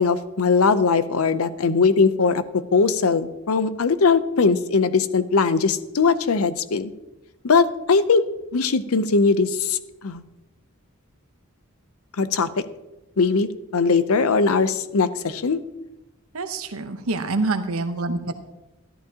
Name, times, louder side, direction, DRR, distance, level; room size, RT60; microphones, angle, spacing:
voice 1, 0.0-2.4 2.7-6.9 7.4-8.2 8.5-10.2 12.2-12.5 13.2-15.6, left 4 dB, 80° left, 13 dB, 0.6 m, -20 dB
voice 2, 16.3-18.4, right 3 dB, 80° right, 8 dB, 1.0 m, -26 dB
13.0 x 11.0 x 2.9 m, 0.98 s
head